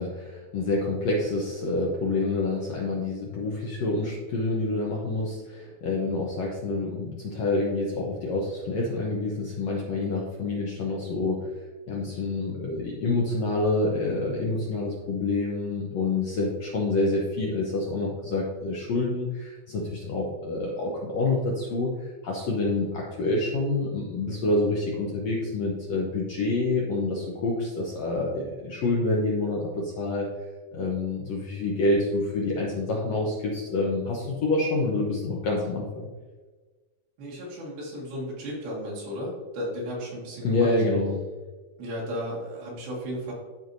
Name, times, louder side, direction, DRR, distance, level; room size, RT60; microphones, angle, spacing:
voice 1, 0.0-11.5 11.9-30.3 30.7-36.1 40.4-41.2, left 2 dB, 80° left, -3 dB, 1.5 m, -27 dB
voice 2, 37.2-40.7 41.8-43.3, equal, 80° right, -5 dB, 3.8 m, -34 dB
13.0 x 4.5 x 2.7 m, 1.3 s
omnidirectional pair, 4.3 m